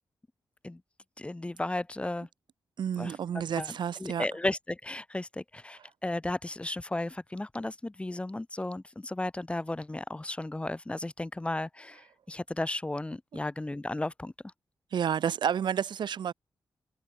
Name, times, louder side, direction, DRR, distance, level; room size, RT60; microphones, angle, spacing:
voice 1, 1.2-2.3 3.0-3.2 3.6-14.3, left 2 dB, 15° left, 2.4 m, -34 dB
voice 2, 2.8-4.3 14.9-16.3, right 8 dB, 80° right, 4.1 m, -30 dB
wide cardioid pair, 115°, 8 cm